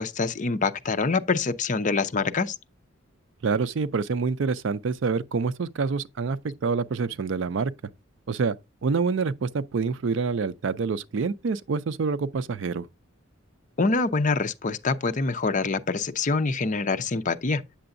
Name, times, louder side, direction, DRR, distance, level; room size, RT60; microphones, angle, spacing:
voice 1, 0.0-2.5 13.8-17.6, left 4 dB, 40° left, 0.5 m, -25 dB
voice 2, 3.4-7.7 8.3-8.6 8.8-12.9, right 4 dB, 60° right, 0.4 m, -27 dB
8.7 x 6.9 x 2.6 m
head